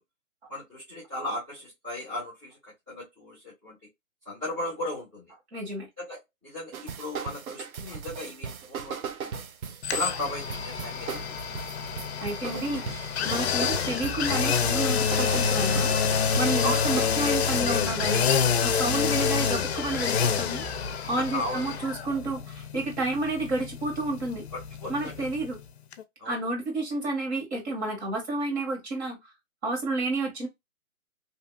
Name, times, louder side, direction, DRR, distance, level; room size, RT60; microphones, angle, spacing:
voice 1, 0.5-3.7 4.2-5.3 6.0-9.4 9.9-11.2 16.6-16.9 21.2-21.6 24.8-25.5 26.2-26.4, left 1 dB, 10° right, 0.5 m, -36 dB
voice 2, 5.5-5.9 7.9-8.0 12.2-12.8 13.2-15.9 16.4-18.3 18.6-20.6 21.1-24.4 24.9-25.6 26.2-29.2 29.6-30.5, right 2 dB, 50° right, 1.5 m, -30 dB
sound 1, 6.7-18.1, right 6 dB, 80° right, 0.6 m, -37 dB
sound 2, 9.8-25.6 25.9-26.0, left 6 dB, 50° left, 0.5 m, -27 dB
2.7 x 2.4 x 2.3 m
hypercardioid pair, 150°, 42 cm